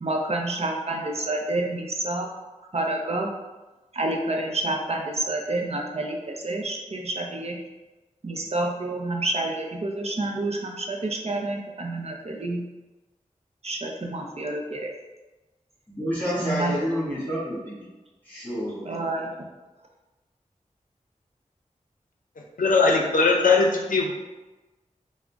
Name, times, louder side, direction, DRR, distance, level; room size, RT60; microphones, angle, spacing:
voice 1, 0.0-2.3 2.7-3.3 3.9-7.6 8.2-12.6 13.6-14.9 16.3-16.8 18.8-19.3, right 2 dB, 50° right, 0 dB, 0.6 m, -28 dB
voice 2, 15.9-17.8 18.2-18.9, equal, 10° left, -9 dB, 1.4 m, -29 dB
voice 3, 22.6-24.1, left 4 dB, 85° left, 0 dB, 0.5 m, -20 dB
3.7 x 2.0 x 3.4 m, 1.1 s
wide cardioid pair, 55°, 13 cm